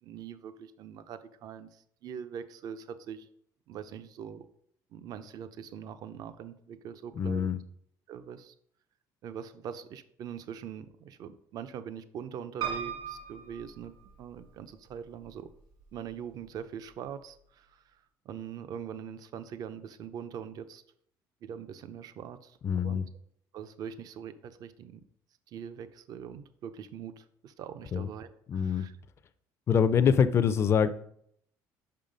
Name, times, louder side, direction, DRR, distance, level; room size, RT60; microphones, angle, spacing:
voice 1, 0.0-3.3 3.7-4.5 4.9-7.5 8.1-8.5 9.2-13.9 14.2-15.5 15.9-20.8 21.4-23.0 23.5-25.0 25.5-28.9, right 8 dB, 50° right, 12 dB, 0.5 m, -42 dB
voice 2, 7.2-7.6 22.6-23.0 27.9-28.1 28.5-28.9 29.7-30.9, left 7 dB, 30° left, 12 dB, 0.4 m, -24 dB
Piano, 12.6-14.6 15.2-15.9 16.2-16.3 16.5-16.6, right 7 dB, 70° right, 2.8 m, -38 dB
5.6 x 5.4 x 5.1 m, 0.68 s
cardioid pair, 145°, 8 cm